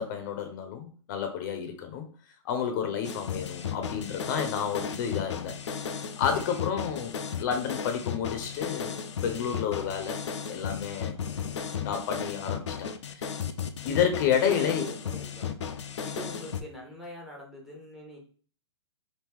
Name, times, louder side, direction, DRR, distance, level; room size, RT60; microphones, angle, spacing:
voice 1, 0.0-2.1 2.4-10.2 10.5-11.2 11.8-13.3 13.8-14.9, left 8 dB, 40° left, 6 dB, 0.6 m, -30 dB
sound 1, 3.0-16.6, left 7 dB, 85° left, 0.4 m, -35 dB
voice 2, 6.3-6.7 10.9-11.3 14.4-15.6 16.0-18.2, equal, 5° right, -1 dB, 0.7 m, -43 dB
3.0 x 2.6 x 3.5 m, 0.42 s
hypercardioid pair, 140°, 15 cm